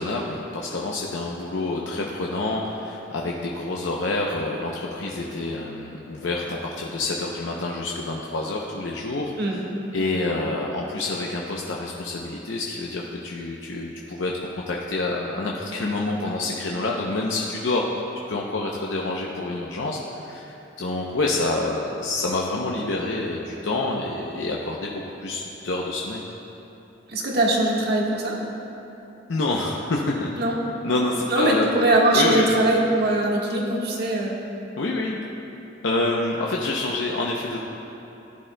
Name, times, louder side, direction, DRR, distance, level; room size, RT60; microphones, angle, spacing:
voice 1, 0.0-9.6 9.9-14.3 14.7-18.0 18.3-26.2 29.3-30.3 30.8-31.7 32.1-32.5 34.8-35.2 35.8-37.6, left 2 dB, 80° left, -2 dB, 0.7 m, -27 dB
voice 2, 27.1-28.4 30.4-30.6 31.3-34.4, right 1 dB, 60° right, -2 dB, 1.5 m, -21 dB
14.5 x 10.0 x 2.2 m, 3.0 s
head